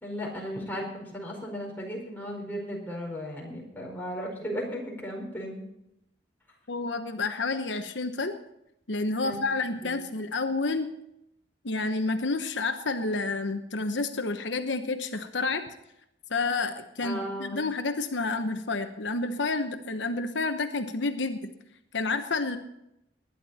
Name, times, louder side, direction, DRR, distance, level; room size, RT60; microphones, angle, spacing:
voice 1, 0.0-5.6 9.2-9.4 9.8-10.1 17.0-17.7, equal, 10° left, -2 dB, 4.7 m, -36 dB
voice 2, 6.7-8.4 8.9-10.9 11.6-15.7 16.3-21.5 21.9-22.6, left 3 dB, 85° left, 7 dB, 1.1 m, -29 dB
20.0 x 11.0 x 4.3 m, 0.81 s
head